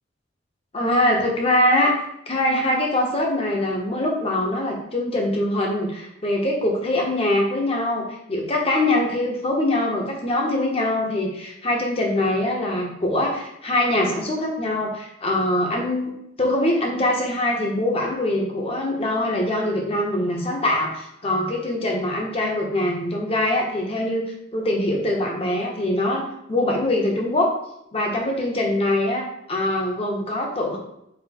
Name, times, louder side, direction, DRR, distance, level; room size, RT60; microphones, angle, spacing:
voice 1, 0.7-2.0 2.3-16.1 16.4-24.2 24.5-27.6 27.9-30.8, left 1 dB, 30° left, 0 dB, 0.7 m, -23 dB
4.1 x 2.1 x 4.2 m, 0.79 s
head